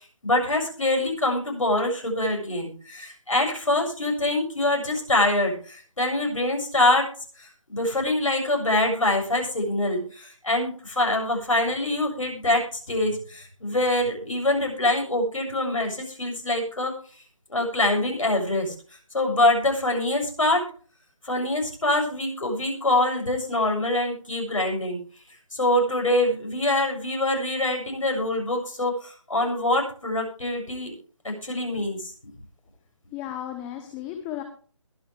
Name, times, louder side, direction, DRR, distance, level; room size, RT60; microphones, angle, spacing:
voice 1, 0.2-7.1 7.4-16.9 17.5-18.7 19.1-20.6 21.2-25.0 25.5-30.9 31.2-32.3, left 1 dB, 80° left, 2 dB, 7.3 m, -24 dB
voice 2, 33.1-34.4, left 11 dB, 10° left, 6 dB, 0.9 m, -34 dB
21.5 x 7.7 x 3.4 m, 0.41 s
figure-of-eight pair, 160°, 16 cm